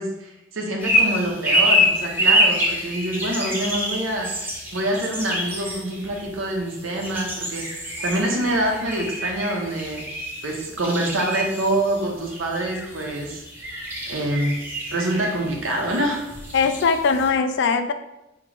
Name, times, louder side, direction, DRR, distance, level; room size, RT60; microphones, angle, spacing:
voice 1, 0.0-10.1 10.4-13.4 14.1-14.6 14.9-16.2, right 1 dB, 80° right, 1 dB, 0.9 m, -26 dB
sound 1, 0.8-17.3, equal, 10° right, 0.8 m, -26 dB
voice 2, 16.5-17.9, left 5 dB, 65° left, 8 dB, 0.4 m, -20 dB
5.0 x 3.0 x 3.3 m, 0.92 s
head